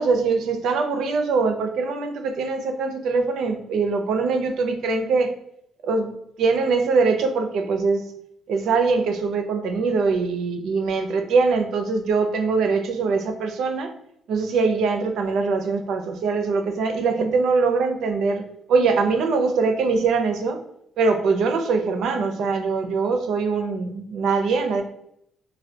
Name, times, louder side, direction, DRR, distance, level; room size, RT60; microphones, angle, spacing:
voice 1, 0.0-5.3 5.8-8.0 8.5-13.9 14.3-18.4 18.7-20.6 21.0-24.8, right 4 dB, 80° right, 6 dB, 0.4 m, -22 dB
3.3 x 2.2 x 2.7 m, 0.74 s
cardioid pair, 90°, 0 cm